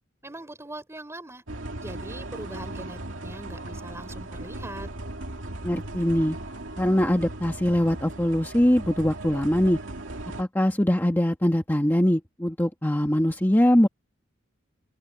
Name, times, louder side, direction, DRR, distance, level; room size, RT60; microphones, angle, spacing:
voice 1, 0.2-1.4 1.8-4.9, right 1 dB, 15° right, 4.7 m, -41 dB
sound 1, 1.5-10.4, right 1 dB, 75° right, 2.6 m, -37 dB
voice 2, 5.6-6.4 6.8-9.8 10.4-13.9, equal, 10° left, 1.4 m, -22 dB
open air
head